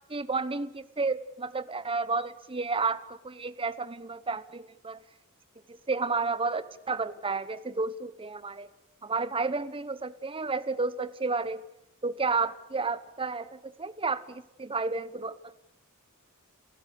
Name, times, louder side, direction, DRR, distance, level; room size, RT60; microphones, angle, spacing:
voice 1, 0.1-5.0 5.7-8.7 9.0-11.6 12.0-15.6, right 4 dB, 25° right, 14 dB, 1.0 m, -31 dB
28.5 x 16.0 x 8.2 m, 0.86 s
head